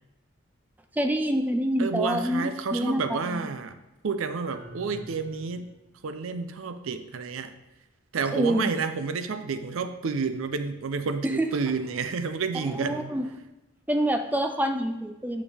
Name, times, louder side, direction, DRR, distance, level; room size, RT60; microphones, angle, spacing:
voice 1, 0.9-3.5 8.3-8.7 11.2-11.5 12.6-13.4 13.9-15.4, equal, 10° right, 5 dB, 0.4 m, -27 dB
voice 2, 1.8-3.7 4.0-5.7 6.0-7.5 8.1-13.1, right 4 dB, 80° right, 9 dB, 0.5 m, -30 dB
sound 1, 4.5-6.0, equal, 30° right, 1.0 m, -46 dB
8.6 x 5.1 x 3.4 m, 1.0 s
head